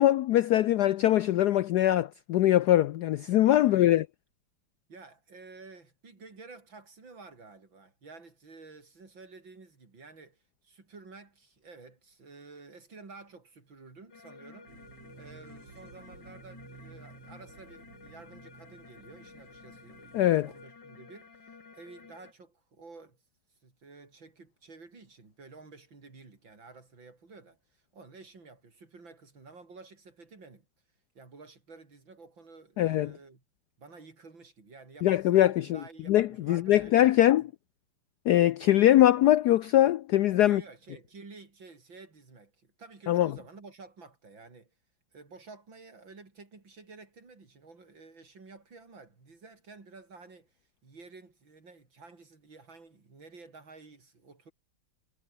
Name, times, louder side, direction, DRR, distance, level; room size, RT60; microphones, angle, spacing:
voice 1, 0.0-4.1 20.1-20.5 32.8-33.1 35.0-35.8 36.1-37.4 38.3-40.6 43.1-43.3, left 13 dB, 80° left, 0.9 m, -22 dB
voice 2, 3.6-4.0 4.9-14.8 15.1-23.2 23.6-30.7 31.1-33.4 33.8-37.3 40.4-44.7 45.1-54.5, right 3 dB, 60° right, 5.0 m, -51 dB
sound 1, 14.1-22.3, left 5 dB, 55° left, 3.3 m, -53 dB
sound 2, 14.7-20.6, right 5 dB, 80° right, 3.8 m, -54 dB
omnidirectional pair, 2.3 m